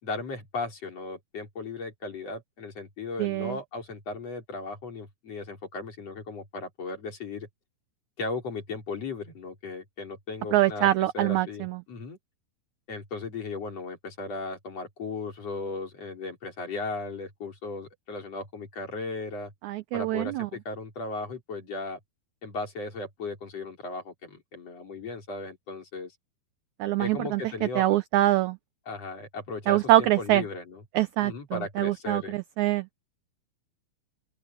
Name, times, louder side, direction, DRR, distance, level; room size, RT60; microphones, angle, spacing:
voice 1, 0.0-7.5 8.2-10.9 11.1-12.2 12.9-19.5 19.9-22.0 22.4-26.1 27.0-27.9 28.9-30.8 31.2-32.4, left 3 dB, 45° left, 5.5 m, -36 dB
voice 2, 3.2-3.6 10.5-11.8 19.6-20.5 26.8-28.6 29.7-30.4 30.9-32.9, right 15 dB, 80° right, 1.7 m, -24 dB
open air
omnidirectional pair, 4.0 m